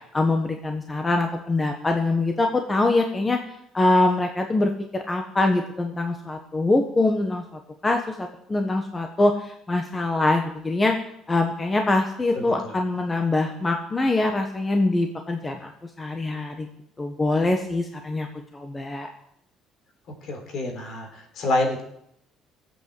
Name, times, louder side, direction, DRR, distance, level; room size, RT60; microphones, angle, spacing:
voice 1, 0.1-3.4 3.7-10.9 11.3-15.7 16.0-16.7 17.0-18.3 18.5-19.1, left 2 dB, 20° left, 4 dB, 1.3 m, -24 dB
voice 2, 20.2-21.8, left 2 dB, 55° left, 4 dB, 3.7 m, -27 dB
17.0 x 8.4 x 7.8 m, 0.75 s
cardioid pair, 125°, 0 cm